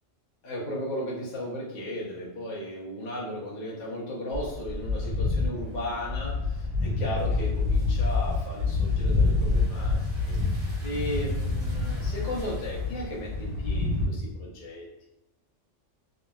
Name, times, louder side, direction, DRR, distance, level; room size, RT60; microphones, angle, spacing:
voice 1, 0.4-10.0 10.2-10.4 10.8-15.1, left 1 dB, 50° left, -5 dB, 0.6 m, -35 dB
sound 1, 4.3-14.1, left 3 dB, 50° right, 1.2 m, -27 dB
2.9 x 2.1 x 2.3 m, 0.88 s
omnidirectional pair, 1.2 m